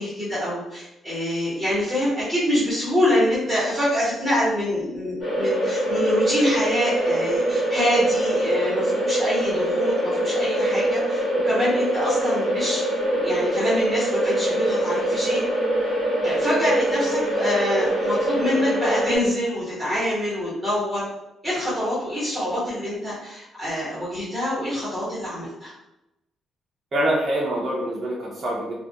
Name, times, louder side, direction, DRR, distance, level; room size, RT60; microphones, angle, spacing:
voice 1, 0.0-12.8 13.1-15.4 16.2-21.0 21.4-25.7, equal, 10° right, -10 dB, 0.9 m, -25 dB
sound 1, 5.2-19.2, right 1 dB, 40° left, 1.2 m, -23 dB
voice 2, 26.9-28.7, right 1 dB, 35° right, -5 dB, 0.4 m, -25 dB
2.3 x 2.2 x 2.6 m, 0.91 s
cardioid pair, 135°, 0 cm